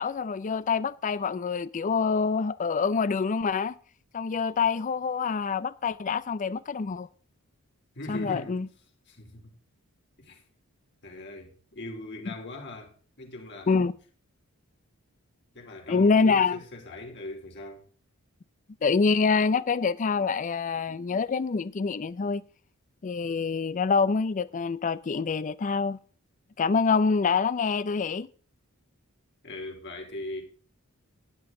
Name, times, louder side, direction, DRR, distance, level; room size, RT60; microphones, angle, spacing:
voice 1, 0.0-3.8 4.1-7.1 8.1-8.7 13.7-13.9 15.9-16.6 18.8-22.4 23.0-26.0 26.6-28.3, left 5 dB, 35° left, 0.4 m, -26 dB
voice 2, 7.9-8.6 9.1-9.5 10.2-10.4 11.0-13.8 15.5-17.8 29.4-30.4, left 1 dB, 55° left, 3.3 m, -40 dB
13.5 x 10.5 x 3.8 m
head